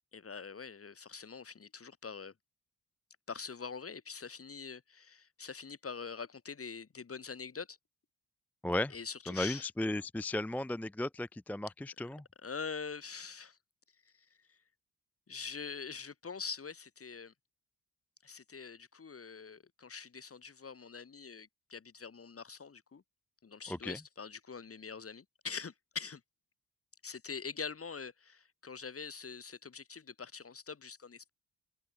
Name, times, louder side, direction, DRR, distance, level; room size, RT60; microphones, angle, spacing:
voice 1, 0.1-2.3 3.3-7.8 8.9-9.7 12.4-13.6 15.3-17.3 18.2-23.0 23.4-26.2 27.0-31.3, left 5 dB, 40° left, 2.1 m, -44 dB
voice 2, 8.6-8.9 9.3-12.2 23.7-24.0, left 1 dB, 5° left, 0.4 m, -35 dB
cardioid pair, 60°, 35 cm